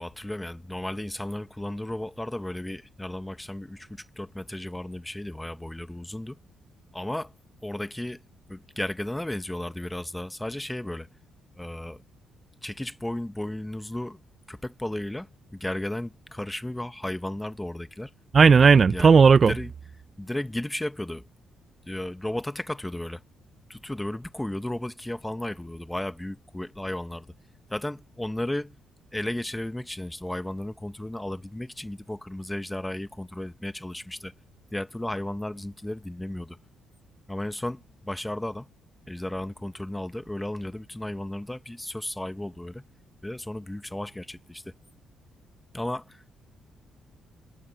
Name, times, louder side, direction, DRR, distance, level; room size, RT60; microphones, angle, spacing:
voice 1, 0.0-6.4 6.9-7.3 7.6-8.2 8.5-11.1 11.6-12.0 12.6-14.2 14.5-18.1 18.9-19.1 19.4-19.7 20.2-21.2 21.8-23.2 23.7-27.3 27.7-28.8 29.1-34.3 34.7-36.6 37.3-38.7 39.1-42.8 43.2-44.7 45.7-46.3, left 1 dB, 10° left, 1.2 m, -34 dB
voice 2, 18.3-19.5, right 5 dB, 40° right, 0.7 m, -15 dB
cardioid pair, 90°, 0 cm